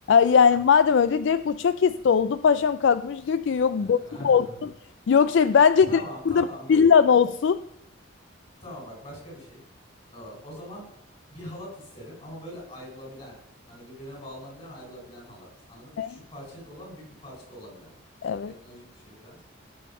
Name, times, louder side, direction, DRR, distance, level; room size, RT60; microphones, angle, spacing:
voice 1, 0.1-4.7 5.1-7.6 16.0-16.1 18.2-18.5, left 6 dB, 60° left, 14 dB, 0.3 m, -20 dB
voice 2, 3.7-4.6 5.9-6.9 8.6-9.6 10.1-10.8 11.3-13.4 13.7-17.9 18.4-19.4, equal, 30° left, -1 dB, 4.9 m, -42 dB
17.5 x 6.4 x 5.4 m, 0.80 s
head